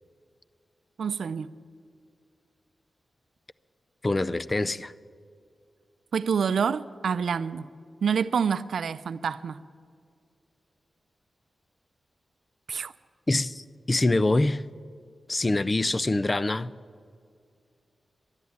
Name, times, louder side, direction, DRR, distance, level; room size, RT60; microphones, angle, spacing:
voice 1, 1.0-1.5 6.1-7.6 8.0-9.6 12.7-12.9, right 6 dB, 85° right, 0.5 m, -27 dB
voice 2, 4.0-4.9 13.3-14.6 15.3-16.7, left 2 dB, 25° left, 0.4 m, -25 dB
13.0 x 11.5 x 9.4 m
wide cardioid pair, 125°, 0 cm